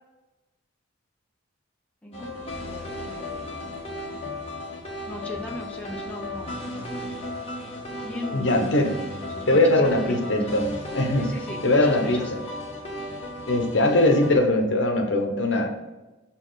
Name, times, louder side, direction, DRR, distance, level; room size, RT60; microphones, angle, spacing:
voice 1, 2.0-3.7 5.0-7.1 8.0-8.7 9.3-10.5 11.2-12.3, left 1 dB, 5° left, -3 dB, 0.8 m, -37 dB
sound 1, 2.1-14.4, left 1 dB, 30° left, 1.3 m, -35 dB
voice 2, 8.3-9.0 9.5-11.3 11.6-12.2 13.5-15.7, left 1 dB, 65° left, 3 dB, 1.0 m, -21 dB
6.0 x 4.3 x 4.0 m, 1.1 s
head